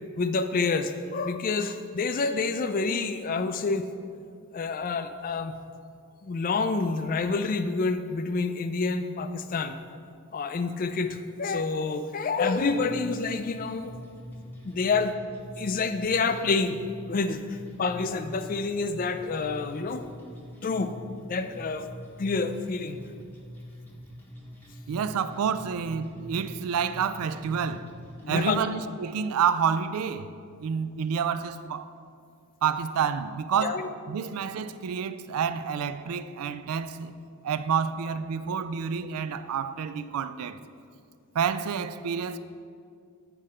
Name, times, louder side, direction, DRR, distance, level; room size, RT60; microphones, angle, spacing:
voice 1, 0.2-3.9 4.5-5.5 6.2-9.7 10.3-13.9 14.6-15.2 15.6-16.8 17.1-20.1 20.6-20.9 21.2-21.9 22.2-23.0 28.2-28.6 33.6-33.9, left 4 dB, 40° left, 0.3 m, -28 dB
sound 1, 12.6-28.6, equal, 10° left, 0.8 m, -45 dB
voice 2, 24.9-27.9 28.3-30.3 30.6-31.9 32.6-37.1 37.4-40.6 41.3-42.4, right 7 dB, 85° right, 0.4 m, -29 dB
9.3 x 4.9 x 4.3 m
head